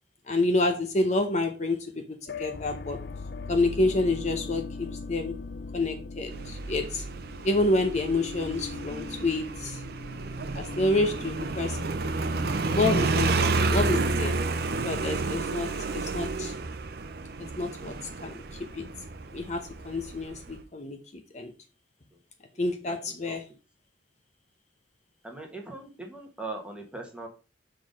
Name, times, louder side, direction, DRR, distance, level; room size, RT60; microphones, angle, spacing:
voice 1, 0.3-3.0 3.5-5.3 5.7-7.0 7.4-9.8 10.5-11.8 12.6-14.4 14.8-16.5 17.6-17.9 18.2-18.4 18.7-18.8 19.3-21.0 21.3-21.5 22.6-23.4, left 2 dB, 40° left, 4 dB, 0.8 m, -28 dB
sound 1, 2.3-14.2, left 4 dB, 55° left, 0.5 m, -41 dB
Motorcycle, 6.3-20.6, right 3 dB, 55° right, 0.6 m, -30 dB
voice 2, 22.5-23.0 23.3-23.4 25.2-27.3, right 2 dB, 5° right, 2 dB, 1.3 m, -40 dB
6.8 x 3.9 x 5.2 m, 0.33 s
head